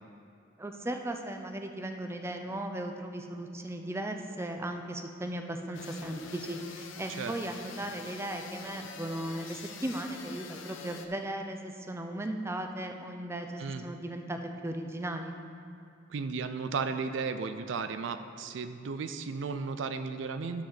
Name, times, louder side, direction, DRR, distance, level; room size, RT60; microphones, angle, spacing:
voice 1, 0.6-15.3, right 1 dB, 15° right, 5 dB, 0.5 m, -37 dB
sound 1, 5.7-11.1, left 5 dB, 75° left, 0.7 m, -46 dB
voice 2, 16.1-20.6, right 5 dB, 65° right, 9 dB, 0.4 m, -34 dB
11.0 x 4.1 x 6.4 m, 2.7 s
head